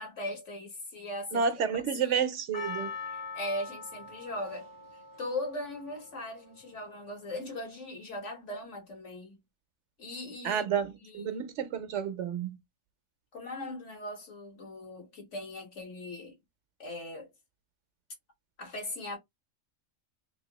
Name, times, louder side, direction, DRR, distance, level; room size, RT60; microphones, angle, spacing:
voice 1, 0.0-1.4 2.0-2.3 3.1-4.7 5.2-9.4 10.0-10.6 11.0-11.4 13.3-16.4 16.8-17.3 18.6-19.2, left 1 dB, 65° left, 1.8 m, -39 dB
voice 2, 1.3-2.9 10.4-12.6, right 7 dB, 70° right, 0.9 m, -30 dB
Percussion, 2.5-6.9 7.5-7.6, left 4 dB, 45° left, 1.3 m, -42 dB
3.3 x 2.7 x 2.9 m
omnidirectional pair, 1.3 m